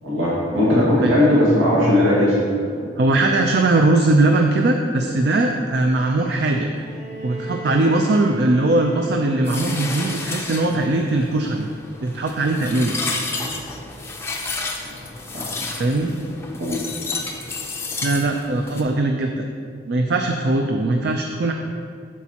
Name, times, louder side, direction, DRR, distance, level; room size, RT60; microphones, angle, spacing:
voice 1, 0.0-2.4 2.7-3.0 14.8-14.9 15.3-15.4 16.5-16.8, left 1 dB, 80° right, -7 dB, 1.8 m, -18 dB
voice 2, 3.0-6.7 7.2-11.7 12.0-13.0 15.8-16.1 18.0-19.4 19.9-21.5, right 2 dB, 55° right, 3 dB, 0.4 m, -20 dB
Bowed string instrument, 6.7-10.7 12.0-12.1, right 1 dB, 10° right, 1.8 m, -38 dB
sound 1, 9.5-18.8, left 3 dB, 10° left, 0.5 m, -31 dB
8.4 x 7.2 x 2.8 m, 2.3 s
head